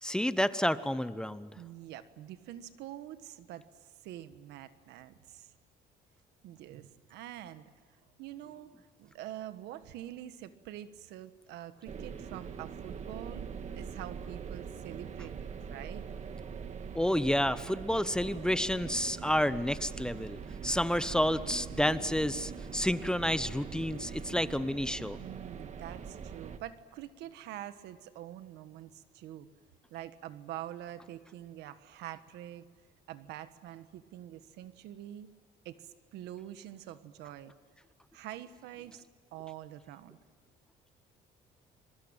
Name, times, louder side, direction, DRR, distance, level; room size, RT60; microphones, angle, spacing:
voice 1, 0.0-1.5 16.9-25.2, equal, 5° left, 13 dB, 0.9 m, -30 dB
voice 2, 1.5-3.7 4.0-5.5 6.4-7.7 8.2-13.5 13.7-16.0 25.2-29.5 29.9-32.7 33.1-35.3 35.6-37.5 38.1-39.0 39.3-40.2, right 12 dB, 85° right, 12 dB, 1.4 m, -45 dB
sound 1, 11.9-26.6, right 6 dB, 45° right, 1.8 m, -43 dB
26.5 x 22.0 x 9.0 m, 1.5 s
cardioid pair, 110°, 17 cm